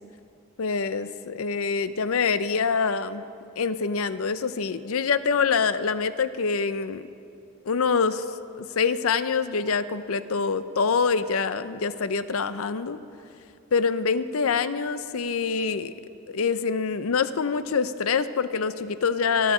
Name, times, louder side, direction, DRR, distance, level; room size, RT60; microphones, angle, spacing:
voice 1, 0.6-3.2 3.6-7.1 7.7-8.2 8.6-13.0 13.7-15.9 16.3-19.5, left 5 dB, 75° left, 13 dB, 0.5 m, -25 dB
26.0 x 10.0 x 5.0 m, 2.6 s
head